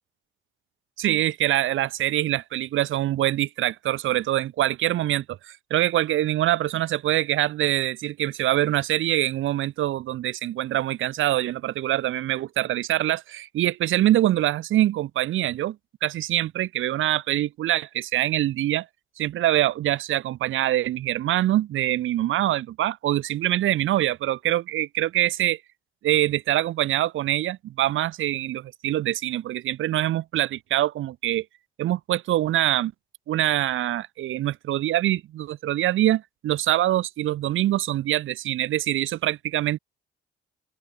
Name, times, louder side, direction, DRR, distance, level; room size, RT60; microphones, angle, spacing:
voice 1, 1.0-15.8 16.0-18.9 19.2-25.6 26.0-31.4 31.8-32.9 33.3-39.8, right 13 dB, 80° right, 4.6 m, -24 dB
open air
cardioid pair, 90°, 20 cm